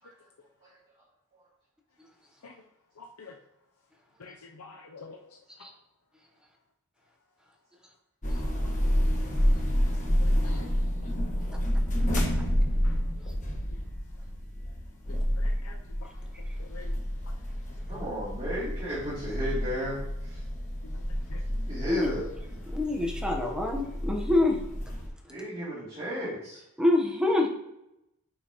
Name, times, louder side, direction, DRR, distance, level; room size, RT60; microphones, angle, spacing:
voice 1, 3.0-3.4 4.2-5.2 10.2-10.7 11.0-11.1 12.8-13.0 15.4-16.1 16.6-17.0 20.8-21.0 21.3-21.4, left 4 dB, 90° left, 2 dB, 0.6 m, -48 dB
sound 1, 8.2-25.1, equal, 35° left, 1.3 m, -29 dB
voice 2, 17.9-20.4 21.5-22.3 25.3-26.6, equal, 25° right, -11 dB, 2.9 m, -34 dB
voice 3, 22.7-24.6 26.8-27.5, left 2 dB, 5° right, 1 dB, 1.0 m, -26 dB
9.1 x 5.4 x 3.0 m, 0.85 s
head